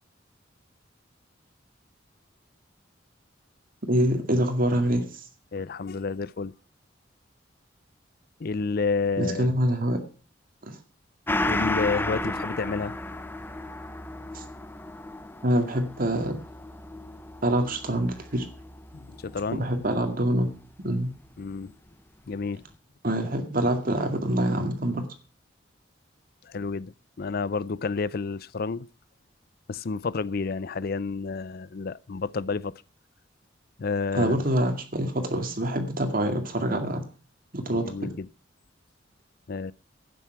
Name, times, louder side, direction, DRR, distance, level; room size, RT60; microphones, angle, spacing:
voice 1, 3.9-5.2 9.2-10.0 10.6-10.8 14.3-14.4 15.4-16.4 17.4-18.5 19.5-21.1 23.0-25.1 34.1-37.1 37.5-38.1, right 1 dB, 50° right, 2.1 m, -26 dB
voice 2, 5.5-6.5 8.4-9.5 11.4-13.0 18.9-19.6 21.4-21.7 22.3-22.6 26.4-28.9 29.7-32.7 33.8-34.4 37.7-38.3 39.5-39.7, left 4 dB, 55° left, 0.5 m, -30 dB
Gong, 11.3-20.2 20.6-20.7, left 2 dB, 10° left, 0.7 m, -33 dB
12.5 x 9.2 x 5.9 m
head